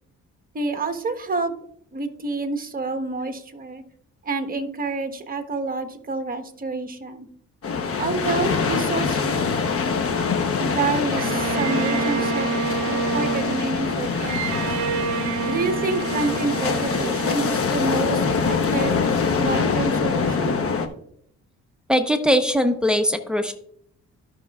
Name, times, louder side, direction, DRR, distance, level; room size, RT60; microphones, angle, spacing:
voice 1, 0.5-1.5 1.9-3.8 4.2-7.3 8.0-9.5 10.6-12.6 12.9-14.8 15.5-19.0 19.3-20.6, right 3 dB, 30° right, 7 dB, 1.2 m, -28 dB
sound 1, 7.6-20.9, left 5 dB, 50° left, 1.0 m, -24 dB
Bowed string instrument, 11.2-18.4, right 6 dB, 70° right, 0.7 m, -28 dB
voice 2, 21.9-23.5, equal, 5° right, 6 dB, 0.9 m, -20 dB
14.0 x 6.1 x 2.4 m, 0.69 s
cardioid pair, 90°, 30 cm